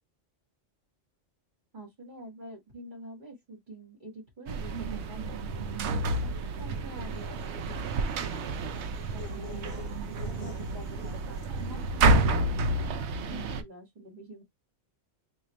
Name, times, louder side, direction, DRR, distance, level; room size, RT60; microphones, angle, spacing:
voice 1, 1.7-5.8 6.2-12.8 13.2-14.4, right 1 dB, 40° right, 1.9 m, -47 dB
sound 1, 4.5-13.6, right 2 dB, 70° right, 0.8 m, -29 dB
sound 2, 7.1-11.7, left 9 dB, 65° left, 0.9 m, -49 dB
3.9 x 2.7 x 3.0 m
omnidirectional pair, 1.3 m